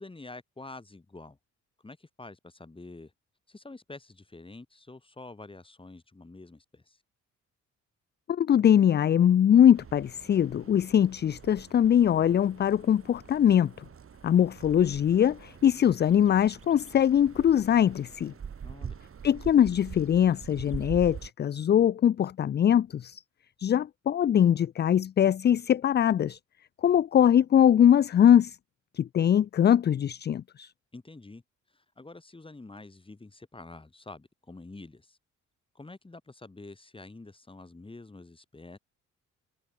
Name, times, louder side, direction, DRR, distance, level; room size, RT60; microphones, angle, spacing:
voice 1, 0.0-1.4 1.8-3.1 3.5-7.0 18.6-19.0 30.9-31.4 31.7-35.2 35.7-38.8, left 2 dB, 15° left, 3.4 m, -47 dB
voice 2, 8.3-13.7 14.2-18.3 19.2-23.2 23.6-26.4 26.8-28.6 29.0-30.7, left 9 dB, 35° left, 0.4 m, -22 dB
sound 1, 9.7-21.3, right 7 dB, 45° right, 5.8 m, -45 dB
cardioid pair, 90°, 30 cm